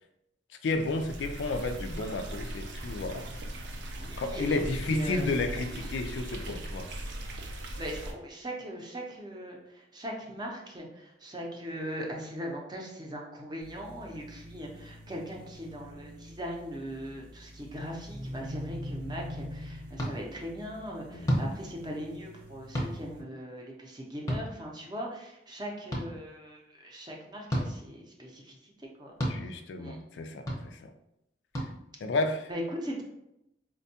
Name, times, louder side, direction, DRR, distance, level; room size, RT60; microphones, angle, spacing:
voice 1, 0.6-3.3 4.2-6.9 21.1-21.4 29.3-30.9 32.0-32.5, left 2 dB, 70° left, 6 dB, 0.3 m, -32 dB
sound 1, 0.7-8.1, right 1 dB, 70° right, 0.5 m, -39 dB
voice 2, 4.0-5.3 5.7-5.9 7.8-29.1 29.8-30.0 32.5-33.0, equal, 25° right, -1 dB, 0.6 m, -40 dB
sound 2, 13.6-23.2, equal, 90° right, 0.9 m, -44 dB
sound 3, 20.0-20.1 21.2-21.5 22.7-22.9 24.3-24.4 25.9-26.0 27.5-27.7 29.2-29.4 30.5-30.6 31.5-31.7, equal, 20° left, 0.7 m, -29 dB
4.3 x 2.2 x 2.7 m, 0.83 s
head